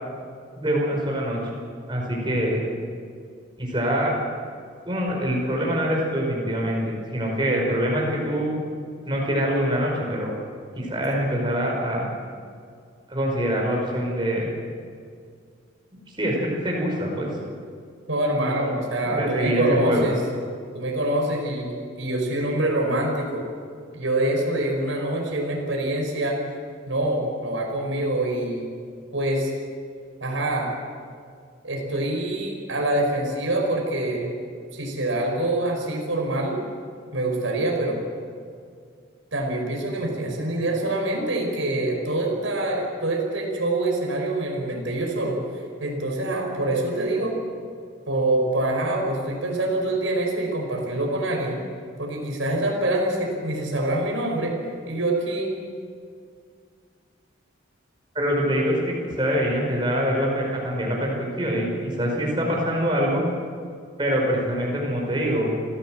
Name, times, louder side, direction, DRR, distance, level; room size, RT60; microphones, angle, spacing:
voice 1, 0.6-1.4 1.9-2.6 3.6-4.1 4.8-8.5 9.1-10.3 10.7-12.1 13.1-14.6 16.2-17.3 19.0-20.1 58.1-63.2 64.0-65.5, equal, 25° right, -1 dB, 5.2 m, -24 dB
voice 2, 18.1-20.2 20.7-23.5 23.9-26.4 26.9-28.7 29.1-29.5 30.2-30.7 31.6-34.3 34.7-36.6 37.1-38.0 39.3-45.4 45.8-47.4 48.1-51.6 52.0-54.6 54.9-55.5, right 1 dB, 75° right, 1 dB, 5.4 m, -25 dB
28.0 x 16.5 x 7.7 m, 2.2 s
head